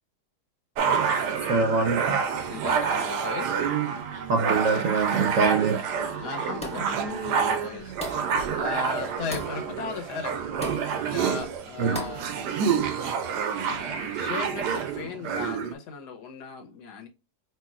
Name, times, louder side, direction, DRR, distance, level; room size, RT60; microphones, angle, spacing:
sound 1, 0.8-15.7, right 6 dB, 85° right, 1.3 m, -28 dB
voice 1, 1.5-2.2 4.3-5.9 11.8-12.0, right 4 dB, 60° right, 1.0 m, -24 dB
voice 2, 2.5-3.6 6.2-10.4 10.8-12.7 13.6-17.1, left 5 dB, 80° left, 1.4 m, -37 dB
sound 2, 6.6-7.0 8.0-8.4 9.3-9.6 10.6-10.9 11.9-12.3, left 1 dB, 5° left, 1.2 m, -36 dB
4.9 x 3.2 x 2.4 m
omnidirectional pair, 1.7 m